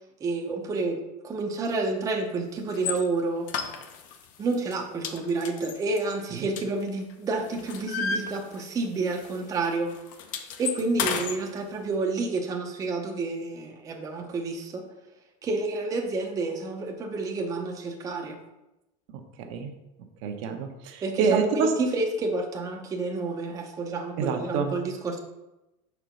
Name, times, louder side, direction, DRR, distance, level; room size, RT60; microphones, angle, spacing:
voice 1, 0.2-3.5 4.4-9.9 10.6-14.8 15.4-18.4 21.0-25.2, right 3 dB, 20° right, 2 dB, 0.6 m, -29 dB
sound 1, 2.7-3.0 3.5-4.2 4.5-4.8 5.0-7.1 7.4-8.9 9.2-9.4 9.6-11.4, left 6 dB, 50° left, 0.7 m, -32 dB
voice 2, 19.4-19.7 20.2-21.7 24.2-24.7, right 6 dB, 60° right, 4 dB, 0.9 m, -27 dB
5.9 x 4.6 x 5.1 m, 0.97 s
cardioid pair, 160°, 18 cm